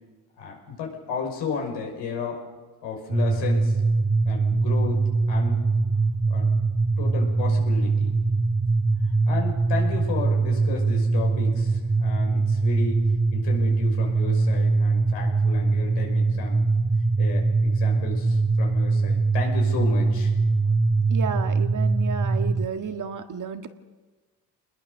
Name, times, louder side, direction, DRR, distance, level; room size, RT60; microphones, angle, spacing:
voice 1, 0.4-2.4 2.8-3.7 4.2-5.6 6.3-6.5 7.0-8.2 9.3-16.6 17.2-20.3, left 5 dB, 85° left, 1 dB, 5.9 m, -33 dB
sound 1, 3.1-22.7, right 3 dB, 10° right, 0.8 m, -22 dB
voice 2, 21.1-23.7, right 7 dB, 45° right, 7 dB, 1.7 m, -32 dB
27.0 x 21.0 x 6.6 m, 1.3 s
cardioid pair, 90°, 42 cm